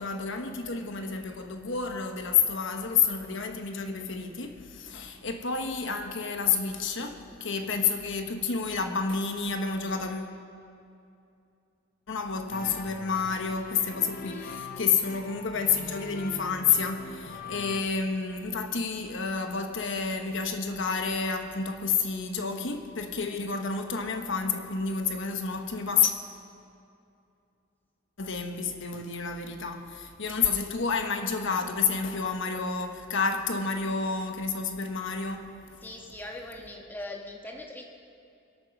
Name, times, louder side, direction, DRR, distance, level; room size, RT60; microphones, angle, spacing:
voice 1, 0.0-10.3 12.1-26.1 28.2-35.5, left 5 dB, 65° left, 1.1 m, -29 dB
sound 1, 12.5-17.8, left 4 dB, 45° left, 0.8 m, -42 dB
voice 2, 14.3-14.9 35.8-37.8, left 1 dB, 10° left, 1.4 m, -41 dB
26.0 x 8.8 x 6.0 m
head